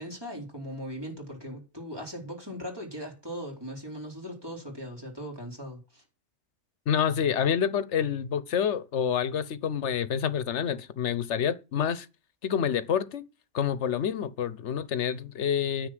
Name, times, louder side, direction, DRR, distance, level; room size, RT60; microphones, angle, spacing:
voice 1, 0.0-6.0, equal, 20° right, 3.9 m, -39 dB
voice 2, 6.9-12.1 12.4-13.2 13.5-15.9, left 8 dB, 80° left, 1.2 m, -28 dB
9.7 x 7.0 x 7.6 m
omnidirectional pair, 1.2 m